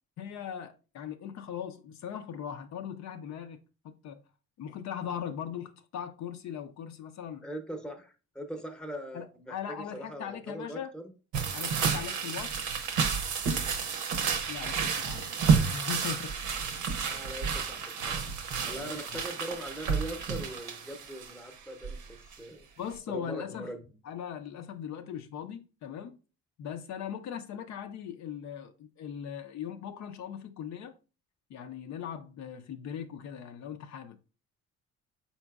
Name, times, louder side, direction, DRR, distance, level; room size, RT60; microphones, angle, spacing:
voice 1, 0.2-3.6 3.8-4.2 4.6-7.4 9.1-10.9 11.5-12.6 14.5-16.4 17.0-17.2 18.6-19.2 22.8-23.7 24.0-26.2 26.6-30.9 31.5-34.2, left 8 dB, 65° left, 0.5 m, -39 dB
voice 2, 7.4-9.6 9.9-11.1 17.1-22.7 23.1-23.8, right 1 dB, 5° left, 0.7 m, -41 dB
sound 1, 11.3-21.5 21.8-22.1 22.3-22.4, right 6 dB, 80° right, 0.7 m, -30 dB
4.3 x 4.0 x 2.3 m
cardioid pair, 90°, 30 cm